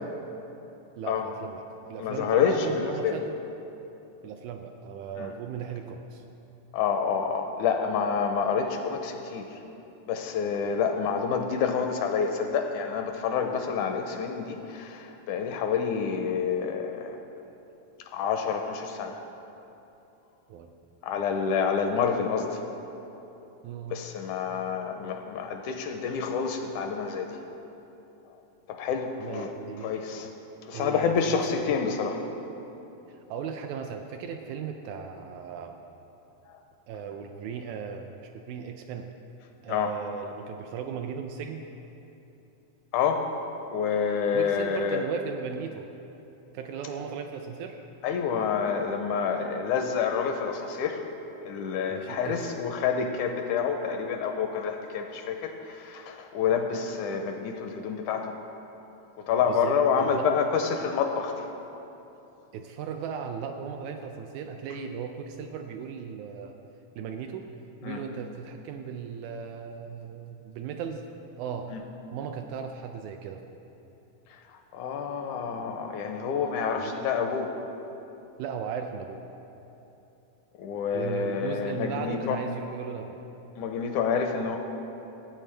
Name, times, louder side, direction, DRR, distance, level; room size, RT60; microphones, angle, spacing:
voice 1, 1.0-1.6 1.9-3.4 4.2-6.2 20.5-20.7 23.6-24.0 29.2-30.0 30.7-31.6 33.1-35.8 36.9-39.1 39.6-41.6 44.3-45.9 46.5-47.8 51.9-52.4 59.5-60.3 62.5-66.5 66.9-67.5 67.8-71.1 71.4-71.7 72.1-73.4 76.8-76.9 78.4-79.2 80.9-83.2, right 7 dB, 80° right, 5 dB, 1.8 m, -37 dB
voice 2, 2.0-3.2 5.2-5.3 6.7-9.6 10.1-17.2 18.0-19.2 21.0-22.6 23.1-23.2 23.9-27.4 28.7-29.5 29.8-30.3 30.6-32.3 36.5-36.6 39.7-39.9 42.9-43.3 43.7-45.0 48.0-51.0 51.4-58.4 59.2-61.5 67.8-68.0 71.7-71.8 74.3-77.5 80.6-82.4 83.6-84.6, left 6 dB, 80° left, 4 dB, 1.9 m, -28 dB
16.0 x 8.9 x 3.3 m, 3.0 s
omnidirectional pair, 3.7 m